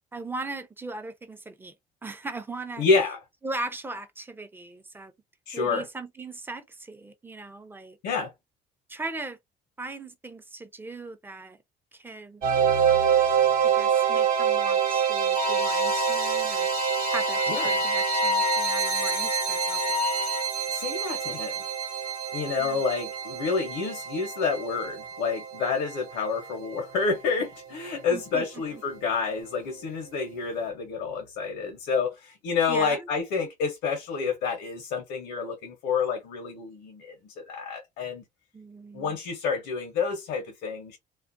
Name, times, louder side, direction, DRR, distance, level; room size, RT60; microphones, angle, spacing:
voice 1, 0.1-1.7 2.0-2.9 3.4-5.1 5.5-8.0 8.9-9.4 9.8-11.6 11.9-12.4 13.7-16.7 17.1-19.9 22.6-22.8 28.1-28.4 28.7-28.8 32.7-33.1 38.5-39.2, right 2 dB, 10° right, 0.6 m, -38 dB
voice 2, 2.8-3.2 5.5-5.8 8.0-8.3 17.5-17.8 20.7-21.6 22.3-38.2 38.9-41.0, left 5 dB, 90° left, 0.9 m, -29 dB
sound 1, 12.4-27.4, right 8 dB, 60° right, 0.9 m, -27 dB
Wind instrument woodwind instrument, 15.3-20.5, left 7 dB, 45° left, 0.4 m, -30 dB
2.4 x 2.1 x 2.5 m
cardioid pair, 110°, 17 cm